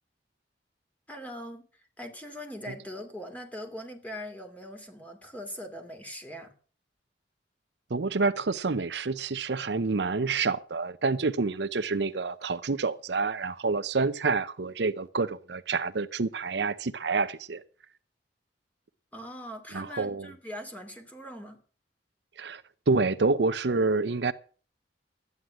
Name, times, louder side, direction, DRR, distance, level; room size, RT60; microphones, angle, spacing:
voice 1, 1.1-1.7 2.0-6.5 19.1-21.6, equal, 10° left, 2.8 m, -41 dB
voice 2, 7.9-17.6 19.7-20.3 22.4-24.3, right 4 dB, 70° right, 0.7 m, -28 dB
13.0 x 9.6 x 7.6 m
head